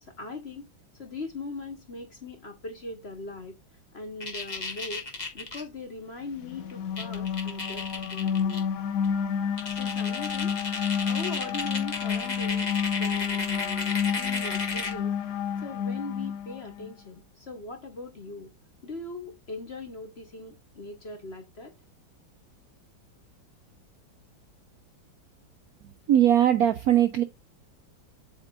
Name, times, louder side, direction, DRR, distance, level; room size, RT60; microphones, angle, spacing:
voice 1, 0.0-3.6 3.9-5.1 5.3-8.7 9.7-12.7 13.0-15.2 15.6-18.5 18.8-21.7, left 3 dB, 40° left, 1.1 m, -40 dB
sound 1, 4.2-5.6 6.7-6.8 7.0-8.6 9.0-9.1 9.6-15.0, left 3 dB, 25° left, 1.4 m, -33 dB
sound 2, 6.4-16.9, left 7 dB, 65° left, 0.9 m, -30 dB
voice 2, 25.8-27.2, right 11 dB, 70° right, 0.9 m, -21 dB
8.0 x 3.8 x 3.8 m
omnidirectional pair, 2.1 m